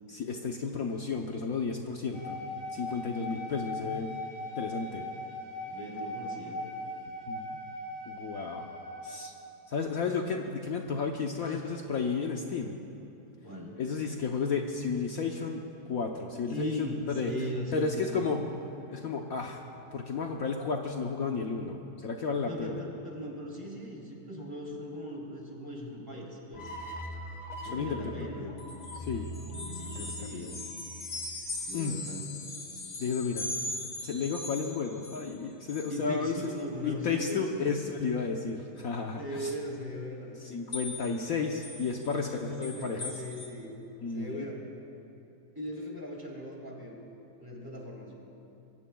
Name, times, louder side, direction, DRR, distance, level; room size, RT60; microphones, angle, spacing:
voice 1, 0.1-2.4 2.7-4.2 4.6-5.0 7.3-7.6 8.1-8.7 9.0-9.3 9.7-12.8 13.8-15.6 15.9-17.3 17.7-18.4 18.9-19.6 19.9-22.8 27.7-28.5 28.9-29.3 29.9-30.5 31.7-32.0 33.0-33.5 34.0-36.3 36.8-39.5 40.4-43.1 44.0-44.4, left 5 dB, 60° left, 1 dB, 1.3 m, -33 dB
sound 1, 2.1-9.6, left 1 dB, 85° right, 2.9 m, -39 dB
voice 2, 5.7-6.7 11.4-11.6 13.4-13.8 16.5-18.4 22.5-26.7 27.6-28.5 29.5-30.6 31.7-32.3 35.9-37.7 39.1-40.4 42.1-43.7 44.1-44.6 45.5-46.9 47.4-48.1, equal, 10° right, -3 dB, 3.3 m, -39 dB
sound 2, 26.5-31.8, equal, 25° left, 1.5 m, -42 dB
sound 3, 28.6-35.3 35.7-36.0 36.4-36.6 37.3-37.4 40.7-41.2 41.6-43.5, left 2 dB, 40° left, 2.4 m, -40 dB
25.5 x 23.0 x 2.3 m, 3.0 s
omnidirectional pair, 1.8 m